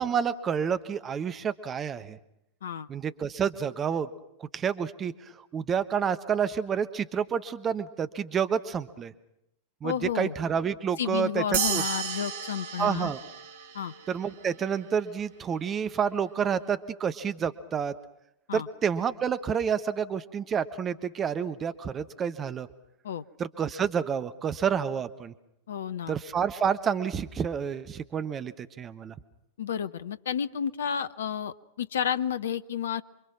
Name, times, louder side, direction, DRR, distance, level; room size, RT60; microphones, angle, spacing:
voice 1, 0.0-2.2 2.9-4.1 4.4-9.1 9.8-11.8 12.8-13.2 14.1-17.9 18.5-22.7 23.4-25.3 26.1-29.1, right 7 dB, 25° right, 12 dB, 1.2 m, -29 dB
voice 2, 9.8-10.3 11.0-13.1 13.7-13.9 18.5-18.7 23.0-23.2 25.7-26.2 29.6-33.0, left 8 dB, 65° left, 14 dB, 0.9 m, -31 dB
sound 1, 11.5-14.3, right 7 dB, 55° right, 1.5 m, -32 dB
28.0 x 24.0 x 6.1 m, 0.84 s
figure-of-eight pair, 90°, 0 cm